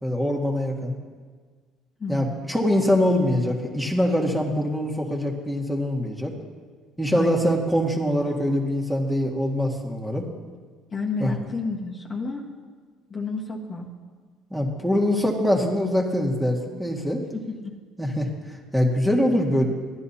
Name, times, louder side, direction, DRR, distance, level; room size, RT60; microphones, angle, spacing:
voice 1, 0.0-0.9 2.1-6.3 7.0-10.3 11.2-11.3 14.5-17.2 18.0-18.3 18.7-19.6, equal, ahead, -1 dB, 1.9 m, -23 dB
voice 2, 2.0-2.5 7.1-7.5 10.9-12.5 13.1-13.9 17.3-17.7, left 3 dB, 35° left, -2 dB, 1.5 m, -31 dB
15.0 x 10.5 x 2.9 m, 1.5 s
supercardioid pair, 75°, 0 cm